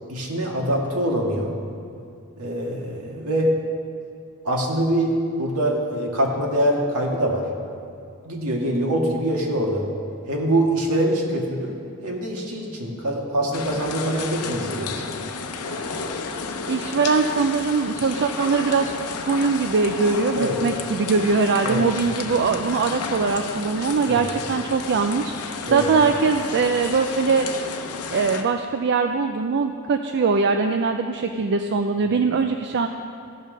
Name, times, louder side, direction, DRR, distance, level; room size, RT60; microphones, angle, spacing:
voice 1, 0.1-1.5 2.4-3.5 4.4-7.4 8.2-9.8 10.3-15.3 20.4-20.6 21.6-21.8 24.1-24.2 25.7-25.9, right 1 dB, 70° right, -1 dB, 1.7 m, -24 dB
sound 1, 13.5-28.4, left 4 dB, 80° left, 0.7 m, -32 dB
voice 2, 16.7-18.9 19.2-27.5 28.1-32.9, right 4 dB, 50° right, 6 dB, 0.4 m, -22 dB
15.0 x 5.5 x 6.4 m, 2.4 s
head